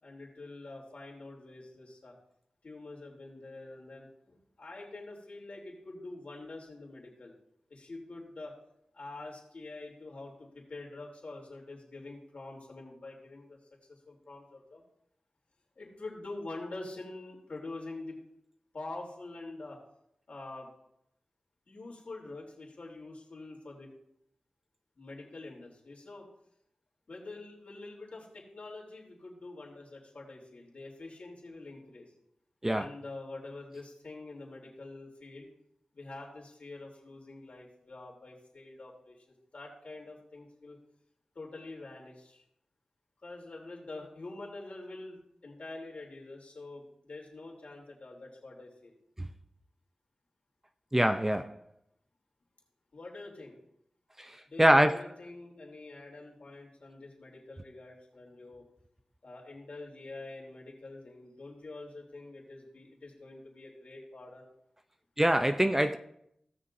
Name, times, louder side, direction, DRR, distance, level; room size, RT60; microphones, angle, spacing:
voice 1, 0.0-2.1 2.6-7.3 7.7-8.5 8.9-13.6 13.9-14.8 15.8-18.2 18.7-19.8 20.3-20.7 21.7-23.9 25.0-26.3 27.1-32.1 32.7-35.5 35.9-40.8 41.3-42.4 43.2-48.9 52.9-53.6 54.5-58.6 59.2-64.5, left 2 dB, 65° left, 3.0 m, -46 dB
voice 2, 50.9-51.6 54.2-55.0 65.2-66.0, right 1 dB, 15° right, 0.5 m, -24 dB
17.0 x 6.5 x 2.6 m
wide cardioid pair, 60°, 2 cm